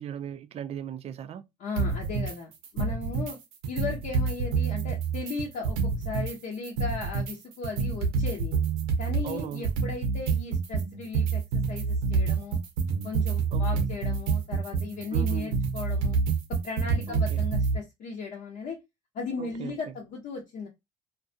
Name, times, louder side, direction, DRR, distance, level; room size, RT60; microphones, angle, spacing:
voice 1, 0.0-1.4 9.2-9.7 13.5-13.9 15.1-15.6 17.1-17.5 19.4-19.8, right 9 dB, 35° right, 0.3 m, -38 dB
voice 2, 1.6-3.4 3.7-8.5 9.0-11.4 11.7-12.6 13.0-16.2 16.5-18.8 19.1-20.7, left 4 dB, 50° left, 0.8 m, -36 dB
sound 1, 1.8-2.3 2.6-3.3 3.6-6.3 6.6-17.8, right 5 dB, 75° right, 0.7 m, -27 dB
2.4 x 2.2 x 2.6 m
hypercardioid pair, 60°, 18 cm